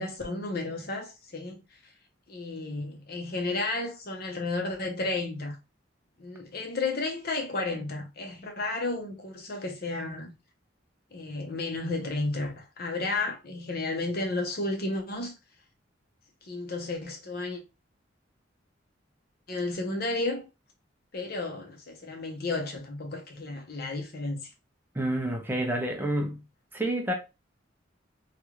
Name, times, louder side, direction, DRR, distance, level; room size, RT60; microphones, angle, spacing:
voice 1, 0.0-1.6 2.3-5.6 6.2-10.3 11.1-15.3 16.4-17.6 19.5-20.5 21.1-24.5, left 2 dB, 55° left, 0.8 m, -32 dB
voice 2, 24.9-26.4 26.7-27.1, right 1 dB, 10° right, 0.5 m, -28 dB
3.2 x 2.4 x 3.0 m
head